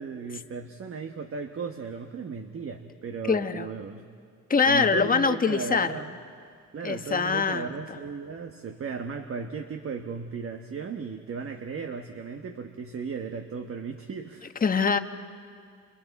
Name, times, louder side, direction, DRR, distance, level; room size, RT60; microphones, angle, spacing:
voice 1, 0.0-4.1 4.6-6.2 6.7-14.5, right 5 dB, 45° right, 5 dB, 1.3 m, -36 dB
voice 2, 3.3-3.7 4.5-5.9 6.8-7.7 14.6-15.0, left 5 dB, 30° left, 8 dB, 1.2 m, -23 dB
30.0 x 29.5 x 4.2 m, 2.1 s
cardioid pair, 90°, 30 cm